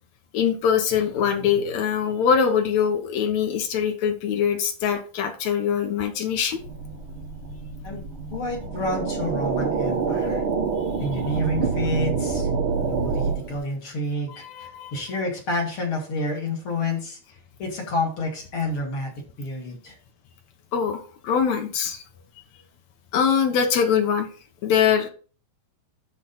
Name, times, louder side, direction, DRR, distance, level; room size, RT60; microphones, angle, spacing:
voice 1, 0.3-6.6 14.3-14.9 20.7-22.0 23.1-24.3 24.6-25.1, left 7 dB, 60° left, 5 dB, 2.1 m, -23 dB
sound 1, 6.6-13.6, right 5 dB, 80° right, 1.1 m, -27 dB
voice 2, 8.3-10.4 11.0-12.5 13.0-17.2 17.6-19.1 19.4-20.0, left 1 dB, 40° left, -1 dB, 2.8 m, -29 dB
12.0 x 4.1 x 4.1 m, 0.38 s
omnidirectional pair, 4.3 m